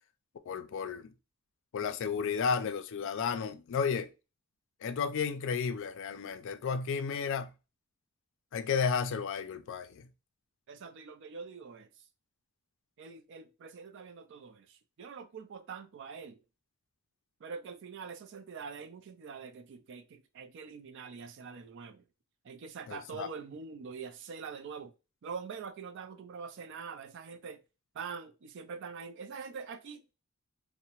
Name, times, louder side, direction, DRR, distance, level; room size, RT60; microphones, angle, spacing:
voice 1, 0.5-1.1 1.7-4.1 4.8-7.5 8.5-10.1 22.9-23.3, left 6 dB, 60° left, 0.3 m, -33 dB
voice 2, 10.7-11.9 13.0-16.4 17.4-22.0 22.4-24.9 25.2-27.6 27.9-30.0, right 5 dB, 55° right, 0.4 m, -44 dB
2.7 x 2.0 x 2.9 m
head